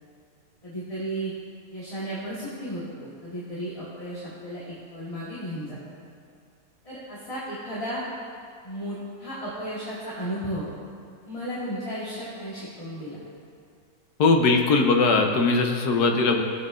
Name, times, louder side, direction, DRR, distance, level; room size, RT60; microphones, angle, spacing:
voice 1, 0.6-1.3 1.7-5.8 6.8-8.0 8.6-10.7 11.2-13.2, right 1 dB, 25° left, -9 dB, 1.5 m, -34 dB
voice 2, 14.2-16.4, left 3 dB, 85° left, 3 dB, 1.4 m, -20 dB
16.0 x 7.4 x 2.5 m, 2.3 s
omnidirectional pair, 1.7 m